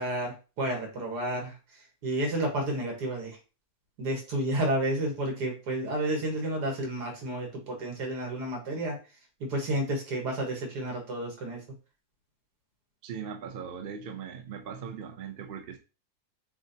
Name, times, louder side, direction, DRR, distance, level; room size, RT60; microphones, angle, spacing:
voice 1, 0.0-1.6 2.0-3.4 4.0-9.0 9.4-11.6, right 1 dB, 80° right, 1 dB, 2.0 m, -31 dB
voice 2, 13.0-15.8, right 7 dB, 55° right, 5 dB, 0.6 m, -39 dB
7.0 x 2.5 x 2.7 m, 0.32 s
omnidirectional pair, 1.7 m